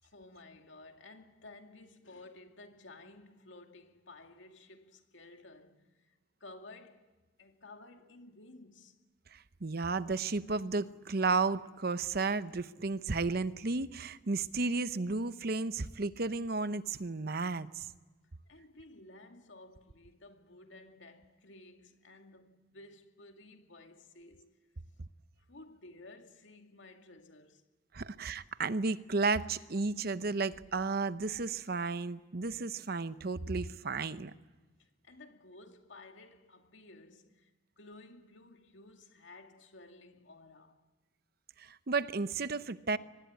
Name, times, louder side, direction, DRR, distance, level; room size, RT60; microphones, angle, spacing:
voice 1, 0.0-7.1 7.4-9.0 18.5-24.5 25.5-27.7 34.8-40.8, left 2 dB, 80° left, 2.3 m, -54 dB
voice 2, 9.3-17.9 27.9-34.3 41.6-43.0, right 3 dB, 55° right, 0.8 m, -33 dB
24.0 x 20.0 x 9.6 m
head